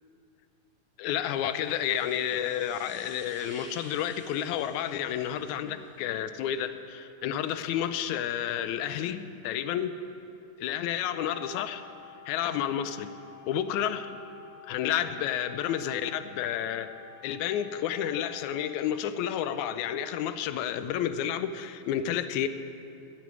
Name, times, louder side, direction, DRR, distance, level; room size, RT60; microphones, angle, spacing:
voice 1, 1.0-9.9 10.6-11.8 12.3-13.1 13.5-14.1 14.7-16.9 17.2-22.5, left 10 dB, 80° left, 11 dB, 1.9 m, -30 dB
sound 1, 1.2-6.0, right 1 dB, 5° right, 1.4 m, -51 dB
sound 2, 11.1-18.7, left 7 dB, 45° left, 0.8 m, -50 dB
15.5 x 6.1 x 9.4 m, 2.6 s
omnidirectional pair, 3.5 m